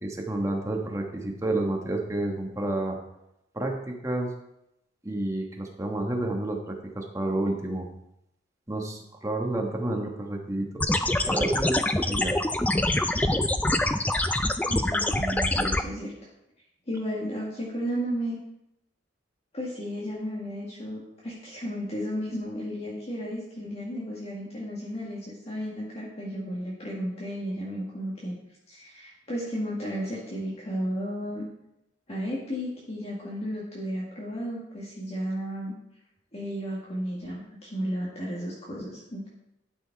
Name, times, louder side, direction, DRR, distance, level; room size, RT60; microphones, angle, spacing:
voice 1, 0.0-3.0 3.5-4.3 5.0-7.9 8.7-10.8 11.3-12.4, right 1 dB, 15° right, 1 dB, 1.2 m, -30 dB
sound 1, 10.8-15.8, left 1 dB, 10° left, 0.3 m, -25 dB
voice 2, 14.7-16.1 16.9-18.4 19.5-28.4 28.7-31.5 32.1-35.7 36.3-39.3, equal, 30° left, -6 dB, 1.7 m, -33 dB
12.0 x 5.5 x 4.6 m, 0.84 s
head